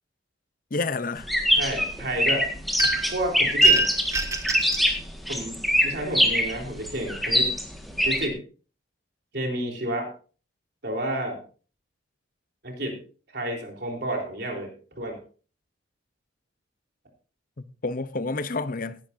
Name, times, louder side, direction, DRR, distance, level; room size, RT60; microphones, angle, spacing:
voice 1, 0.7-1.3 17.6-19.0, left 3 dB, 45° left, 0.7 m, -29 dB
sound 1, 1.2-8.3, equal, ahead, 1.8 m, -23 dB
voice 2, 1.5-2.5 3.1-3.9 5.3-7.5 8.0-8.4 9.3-10.1 10.8-11.4 12.6-13.0 13.3-15.2, right 1 dB, 60° right, 3.9 m, -30 dB
sound 2, 2.8-3.2 3.6-4.9, right 3 dB, 15° right, 1.2 m, -28 dB
17.0 x 11.0 x 2.7 m
head